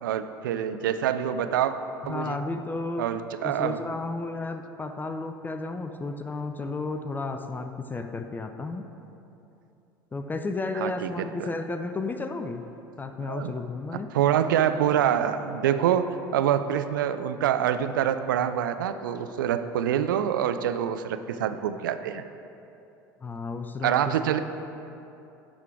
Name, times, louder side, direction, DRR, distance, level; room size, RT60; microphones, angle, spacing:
voice 1, 0.0-1.7 2.0-2.4 3.0-3.8 10.8-11.5 13.2-13.6 14.1-22.2 23.8-24.4, right 9 dB, 70° right, 10 dB, 0.4 m, -26 dB
voice 2, 2.0-8.9 10.1-12.6 13.0-14.1 23.2-24.4, left 3 dB, 15° left, 7 dB, 0.4 m, -33 dB
11.0 x 3.8 x 4.6 m, 2.8 s
figure-of-eight pair, 70°, 11 cm